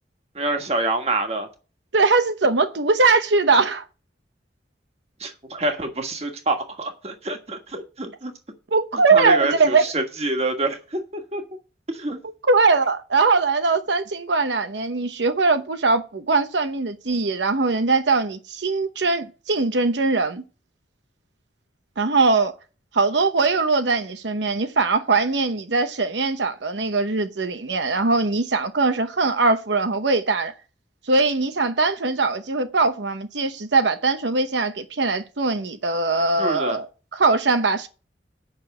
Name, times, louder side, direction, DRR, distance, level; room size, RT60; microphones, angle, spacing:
voice 1, 0.3-1.5 5.2-8.3 8.9-11.0 11.3-11.4 11.9-12.2 36.4-36.8, right 2 dB, 35° right, 1.5 m, -26 dB
voice 2, 1.9-3.8 8.7-9.8 12.5-20.4 22.0-22.5 22.9-30.5 31.1-36.9 37.1-37.9, right 3 dB, 85° right, 0.9 m, -21 dB
8.1 x 6.1 x 7.9 m
head